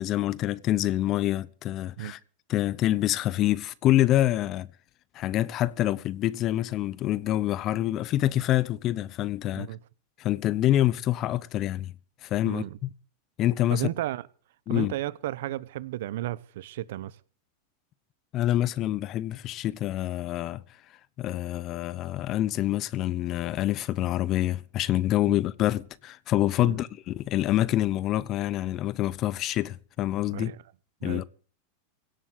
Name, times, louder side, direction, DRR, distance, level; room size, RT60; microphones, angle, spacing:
voice 1, 0.0-2.2 2.5-4.7 5.1-9.7 10.2-11.9 12.2-12.9 13.4-13.9 14.7-14.9 18.3-20.6 21.2-30.5 31.0-31.2, left 14 dB, 40° left, 0.8 m, -26 dB
voice 2, 12.4-12.8 13.7-14.3 14.7-17.2 25.3-25.4 26.6-26.8 30.3-30.6 31.0-31.2, right 14 dB, 75° right, 0.9 m, -33 dB
17.5 x 7.6 x 8.0 m
supercardioid pair, 130°, 0 cm